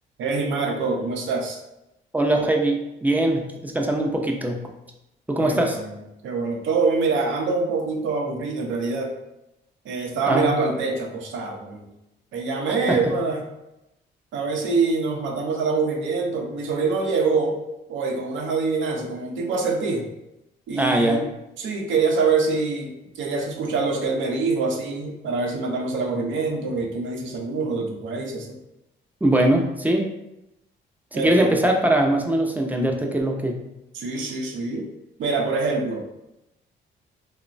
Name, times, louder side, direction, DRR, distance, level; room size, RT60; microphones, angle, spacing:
voice 1, 0.2-1.6 5.4-6.0 6.2-9.1 9.8-11.9 12.3-13.4 14.3-17.6 17.9-20.0 20.7-21.2 21.6-28.5 31.1-31.5 33.9-34.9 35.2-36.0, right 4 dB, 75° right, 2 dB, 0.6 m, -25 dB
voice 2, 2.1-4.6 5.3-5.8 10.3-10.5 12.9-13.0 20.8-21.2 29.2-30.1 31.1-33.6, right 1 dB, 10° right, 2 dB, 0.4 m, -21 dB
2.9 x 2.1 x 2.5 m, 0.89 s
cardioid pair, 90°, 20 cm